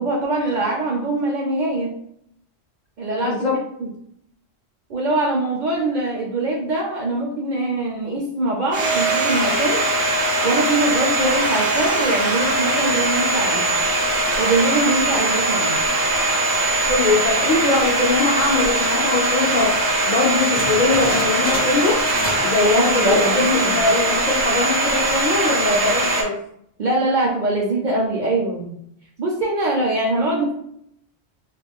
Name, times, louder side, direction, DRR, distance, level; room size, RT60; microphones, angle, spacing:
voice 1, 0.0-1.9 3.0-3.3 3.8-3.9 4.9-9.8 10.4-13.7 14.4-15.8 22.6-23.8 26.8-28.7 29.2-30.5, right 2 dB, 55° right, -2 dB, 0.6 m, -22 dB
voice 2, 3.2-3.6 16.9-19.7 20.1-22.0 22.4-26.4, left 3 dB, 55° left, -3 dB, 0.6 m, -21 dB
Domestic sounds home sounds, 8.7-26.2, right 2 dB, 90° right, 0.9 m, -21 dB
sound 1, 20.5-22.6 22.8-23.2 23.7-23.8 24.5-24.8, equal, 10° left, 0.5 m, -30 dB
2.4 x 2.2 x 3.4 m, 0.72 s
omnidirectional pair, 1.1 m